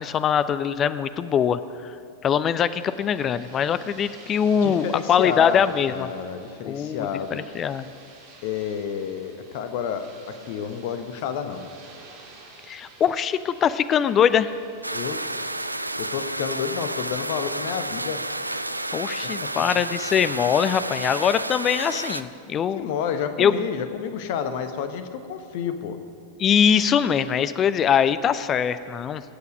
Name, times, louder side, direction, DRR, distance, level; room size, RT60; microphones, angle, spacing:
voice 1, 0.0-1.9 2.2-6.1 6.6-7.9 12.7-14.6 18.9-22.8 23.4-23.5 26.4-29.2, left 8 dB, 25° left, 14 dB, 0.5 m, -22 dB
sound 1, 2.6-15.8, right 3 dB, 50° right, 2.7 m, -50 dB
voice 2, 4.6-7.4 8.4-11.7 14.9-15.2 16.0-18.2 19.4-19.5 22.5-26.0, left 7 dB, 50° left, 8 dB, 1.1 m, -30 dB
sound 2, 14.8-22.2, right 1 dB, 85° right, 0.4 m, -31 dB
24.0 x 8.2 x 5.2 m, 2.5 s
figure-of-eight pair, 95°, 0 cm